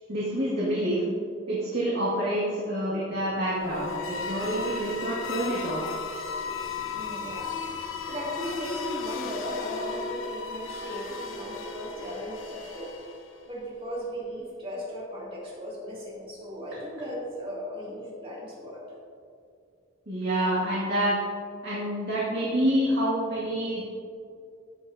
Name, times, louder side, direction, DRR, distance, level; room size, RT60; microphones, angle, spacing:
voice 1, 0.1-1.0 1.5-5.9 20.1-21.2 21.6-23.8, right 1 dB, 55° right, -8 dB, 1.9 m, -27 dB
sound 1, 3.5-13.5, left 4 dB, 90° left, 0.8 m, -35 dB
voice 2, 6.9-7.5 8.1-13.0 13.5-18.8, equal, 30° right, -5 dB, 2.2 m, -37 dB
15.0 x 5.8 x 2.7 m, 2.4 s
head